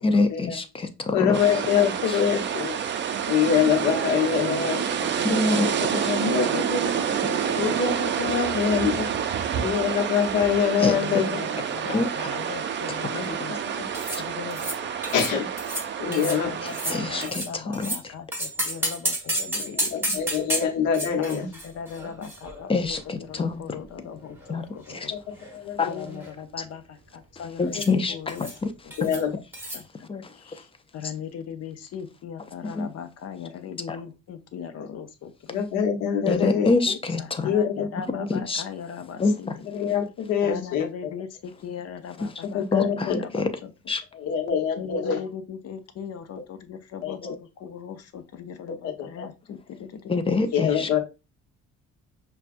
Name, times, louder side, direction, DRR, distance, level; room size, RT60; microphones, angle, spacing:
voice 1, 0.0-1.4 2.1-2.2 5.2-5.7 6.0-6.1 10.8-11.0 11.9-12.1 12.9-13.0 16.9-17.9 22.7-23.6 24.5-24.7 24.9-25.1 25.8-25.9 27.6-28.4 30.1-30.3 32.6-32.9 33.9-34.0 36.3-37.5 38.3-38.6 39.2-39.6 42.7-43.5 43.9-44.0 50.1-51.0, left 3 dB, 20° left, 8 dB, 0.5 m, -25 dB
voice 2, 1.1-2.8 3.3-4.8 5.8-7.0 7.6-9.1 9.6-11.4 13.1-13.3 13.8-13.9 15.1-15.5 16.0-16.5 19.6-21.5 25.5-26.2 27.7-27.8 29.0-29.3 35.5-36.7 37.4-38.3 39.7-40.9 42.4-43.2 44.1-45.2 47.0-47.3 48.7-49.3 50.5-51.0, left 7 dB, 90° left, 3 dB, 1.0 m, -25 dB
sound 1, 1.3-17.3, right 8 dB, 40° right, 0.4 m, -28 dB
voice 3, 4.4-6.6 6.9-9.7 10.8-15.1 16.1-20.3 21.2-25.1 25.9-28.6 28.8-29.3 29.7-35.6 36.2-39.7 40.4-43.7 44.8-50.5, left 7 dB, 55° left, 8 dB, 0.7 m, -39 dB
sound 2, 13.9-14.2 14.5-14.8 15.0-15.3 15.6-15.9 16.1-16.4 16.7-18.0 18.3-23.0 23.3-23.4 24.1-25.0 25.3-25.6 25.8-26.3 27.7-27.9 28.3-28.6 28.9-29.2 29.5-29.8, right 1 dB, 10° right, 1.4 m, -31 dB
5.6 x 2.3 x 2.5 m, 0.27 s
cardioid pair, 120°, 30 cm